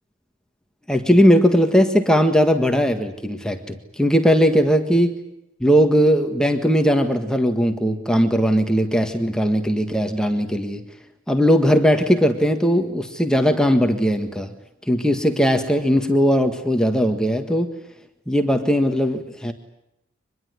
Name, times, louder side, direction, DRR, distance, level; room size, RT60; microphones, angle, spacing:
voice 1, 0.9-5.1 5.6-10.8 11.3-14.5 14.9-17.7 18.3-19.5, equal, 5° left, 5 dB, 1.7 m, -18 dB
25.5 x 21.5 x 9.6 m, 0.87 s
head